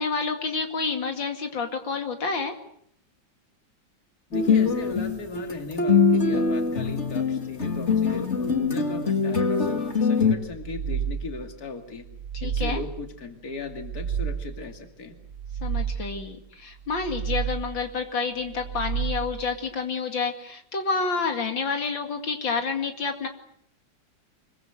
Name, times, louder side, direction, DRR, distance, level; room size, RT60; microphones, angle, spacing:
voice 1, 0.0-2.5 12.3-12.8 15.6-23.3, left 4 dB, 80° left, 5 dB, 3.0 m, -29 dB
voice 2, 4.3-12.1 12.4-15.1, left 4 dB, 50° left, 5 dB, 3.0 m, -37 dB
sound 1, 4.3-10.3, left 5 dB, 35° left, 2.8 m, -23 dB
sound 2, 10.4-11.5 12.0-13.1 13.6-14.7 15.2-16.3 16.8-17.9 18.4-19.5, right 8 dB, 70° right, 2.3 m, -31 dB
26.0 x 23.0 x 7.9 m, 0.65 s
omnidirectional pair, 2.0 m